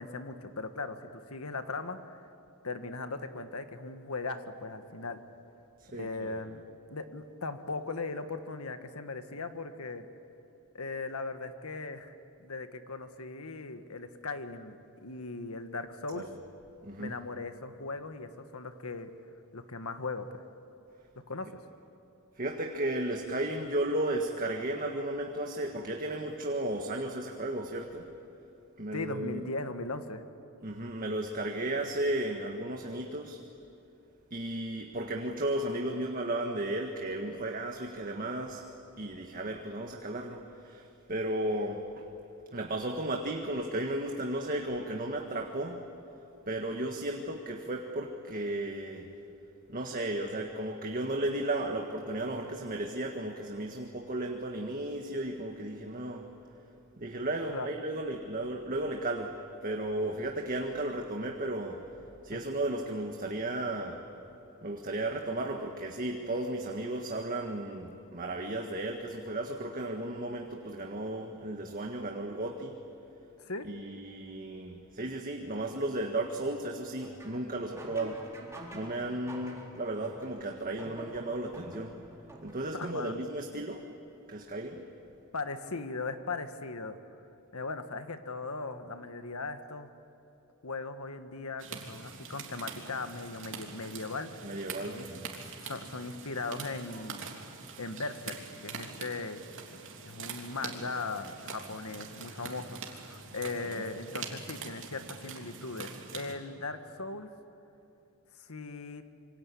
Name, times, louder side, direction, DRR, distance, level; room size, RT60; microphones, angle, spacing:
voice 1, 0.0-2.3 2.6-5.2 5.9-6.6 6.9-10.1 10.7-12.1 12.4-16.2 17.0-19.1 19.5-20.3 21.3-21.5 28.9-30.2 57.5-57.7 62.3-62.4 73.4-73.7 82.7-83.2 85.3-87.0 87.5-89.9 90.6-95.1 95.6-97.3 97.8-98.4 98.6-99.4 100.0-107.3 108.4-109.0, left 3 dB, 75° left, 9 dB, 1.6 m, -38 dB
voice 2, 5.8-6.3 16.1-16.3 16.8-17.2 22.4-28.1 28.8-29.4 30.6-33.4 34.3-38.6 39.0-42.1 42.5-45.9 46.5-49.1 49.7-56.2 57.0-59.4 59.6-61.8 62.2-64.0 64.6-72.8 73.6-78.2 78.7-81.9 82.4-83.9 84.3-84.9 94.4-95.3 103.7-103.8, right 1 dB, 40° right, 2 dB, 1.7 m, -34 dB
sound 1, 77.0-82.9, right 1 dB, 15° right, 4.0 m, -48 dB
sound 2, 91.6-106.3, right 5 dB, 60° right, 3.3 m, -44 dB
27.0 x 24.5 x 8.6 m, 3.0 s
head